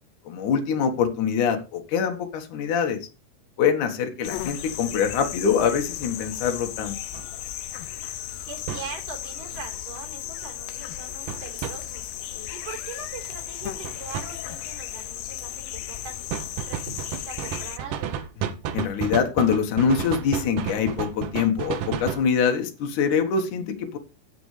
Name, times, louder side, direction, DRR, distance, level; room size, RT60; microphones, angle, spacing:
voice 1, 0.3-3.0 3.6-6.9 18.7-24.0, left 6 dB, 65° left, 4 dB, 2.9 m, -24 dB
sound 1, 4.2-17.8, left 12 dB, 85° left, 1.5 m, -35 dB
sound 2, 7.1-7.3 8.7-8.9 11.3-11.7 13.8-14.3 16.3-22.3, right 9 dB, 75° right, 2.5 m, -31 dB
voice 2, 8.1-18.1, right 6 dB, 45° right, 2 dB, 5.0 m, -41 dB
16.5 x 7.0 x 3.3 m, 0.29 s
omnidirectional pair, 3.9 m